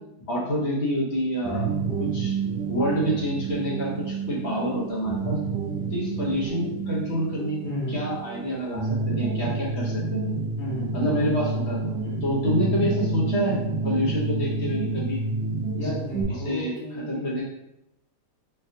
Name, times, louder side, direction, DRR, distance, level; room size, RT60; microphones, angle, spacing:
voice 1, 0.3-1.7 2.0-2.4 2.7-5.4 5.9-7.6 7.9-10.3 10.9-11.9 12.2-15.2 15.8-15.9 16.4-16.7 17.1-17.4, equal, 45° left, -5 dB, 1.1 m, -27 dB
sound 1, 1.4-16.2, right 4 dB, 70° right, 0.5 m, -29 dB
voice 2, 7.6-8.0 10.6-11.0 12.0-12.3 15.8-17.3, left 1 dB, 65° left, -8 dB, 1.8 m, -33 dB
4.3 x 2.5 x 2.6 m, 0.86 s
omnidirectional pair, 1.9 m